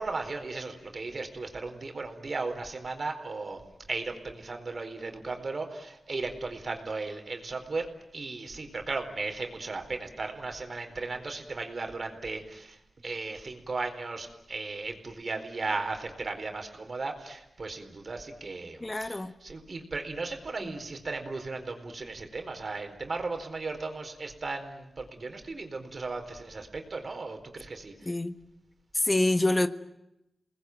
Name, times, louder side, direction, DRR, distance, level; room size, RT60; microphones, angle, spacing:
voice 1, 0.0-7.9 8.1-12.8 13.0-27.9, right 3 dB, 60° right, 4.3 m, -36 dB
voice 2, 18.8-19.3 28.0-28.3 29.0-29.7, left 2 dB, 30° left, 1.5 m, -26 dB
28.5 x 20.0 x 9.2 m
cardioid pair, 40°, 0 cm